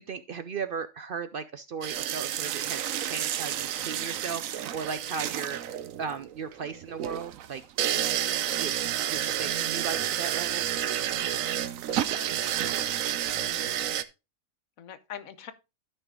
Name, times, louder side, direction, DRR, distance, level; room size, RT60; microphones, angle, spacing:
voice 1, 0.0-7.6 8.6-8.7 9.1-10.6, right 6 dB, 60° right, 0.6 m, -36 dB
sound 1, 1.8-14.0, right 11 dB, 85° right, 1.1 m, -30 dB
voice 2, 11.9-12.3 12.8-13.0 13.2-13.8 14.8-15.5, left 9 dB, 90° left, 1.3 m, -44 dB
12.5 x 5.6 x 3.6 m
omnidirectional pair, 1.4 m